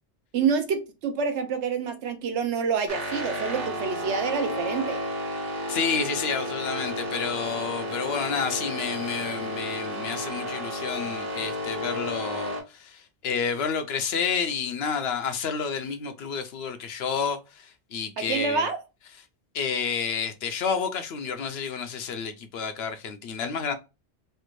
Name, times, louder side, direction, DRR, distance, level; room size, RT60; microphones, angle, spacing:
voice 1, 0.3-5.0 18.2-18.8, right 5 dB, 80° right, 1.0 m, -27 dB
sound 1, 2.9-12.6, equal, 55° right, 1.4 m, -32 dB
voice 2, 5.7-18.7 19.5-23.7, left 6 dB, 70° left, 0.8 m, -30 dB
3.3 x 2.5 x 3.0 m
omnidirectional pair, 1.2 m